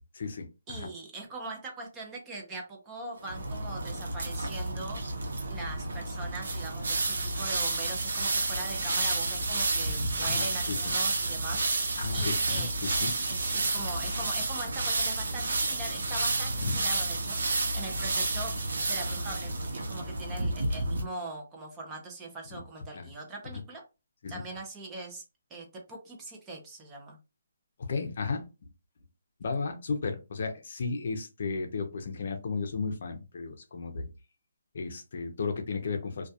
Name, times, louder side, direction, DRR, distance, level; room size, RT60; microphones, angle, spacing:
voice 1, 0.1-0.9 10.2-10.8 12.0-13.1 16.6-16.8 22.5-22.6 22.9-23.1 24.2-24.4 27.9-28.5 29.4-34.1 34.7-36.3, left 4 dB, 50° left, 5 dB, 0.5 m, -34 dB
voice 2, 0.7-5.0 5.5-11.6 12.1-12.7 13.0-17.4 17.7-18.6 18.9-23.8 24.3-25.2 25.5-27.2, right 2 dB, 15° right, 1 dB, 0.5 m, -41 dB
sound 1, 3.2-21.0, right 2 dB, 80° right, 0.7 m, -30 dB
2.2 x 2.2 x 2.7 m, 0.28 s
hypercardioid pair, 170°, 0 cm